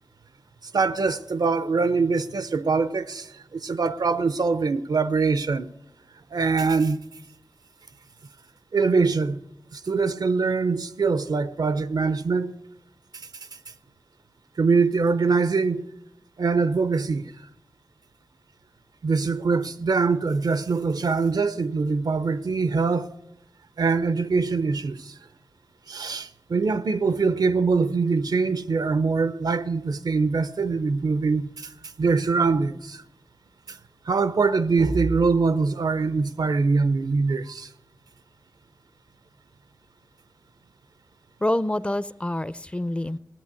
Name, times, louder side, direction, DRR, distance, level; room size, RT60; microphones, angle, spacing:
voice 1, 0.7-5.7 6.3-7.0 8.7-9.4 9.7-12.5 14.6-15.9 16.4-17.3 19.0-23.1 23.8-25.1 25.9-31.7 32.0-33.0 33.7-33.8 34.1-37.7, right 4 dB, 80° right, 0.6 m, -23 dB
voice 2, 41.4-43.2, left 1 dB, 15° left, 0.5 m, -26 dB
17.5 x 9.0 x 8.3 m
wide cardioid pair, 65°, 7 cm